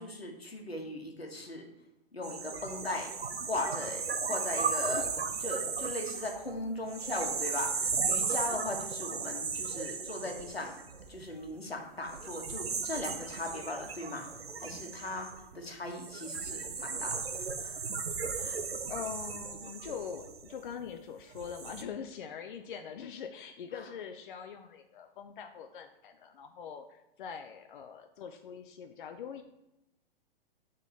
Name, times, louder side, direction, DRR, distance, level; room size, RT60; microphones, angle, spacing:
voice 1, 0.0-1.7 2.1-3.1 3.4-10.8 11.1-18.6 23.7-23.8, left 2 dB, 90° left, 2 dB, 1.3 m, -39 dB
sound 1, 2.2-11.4 12.1-20.8 21.3-21.8, right 5 dB, 85° right, 0.7 m, -36 dB
voice 2, 18.9-29.4, left 7 dB, 55° left, 7 dB, 0.5 m, -43 dB
8.0 x 3.7 x 4.1 m, 0.90 s
figure-of-eight pair, 115°, 30 cm